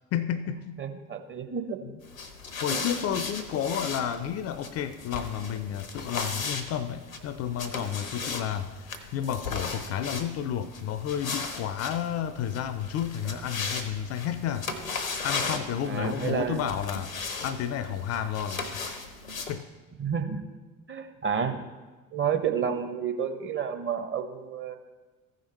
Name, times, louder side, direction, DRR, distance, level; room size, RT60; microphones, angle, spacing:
voice 1, 0.1-0.8 2.6-15.0 15.2-17.1 17.4-18.8 19.5-19.7, left 9 dB, 40° left, 14 dB, 0.5 m, -31 dB
voice 2, 0.8-1.8 2.7-2.9 15.8-16.7 20.0-20.5 20.9-21.6 22.1-24.8, right 7 dB, 30° right, 7 dB, 1.0 m, -30 dB
sound 1, 2.0-19.5, left 4 dB, 85° left, 0.8 m, -37 dB
15.0 x 5.2 x 4.2 m, 1.3 s
figure-of-eight pair, 55°, 40 cm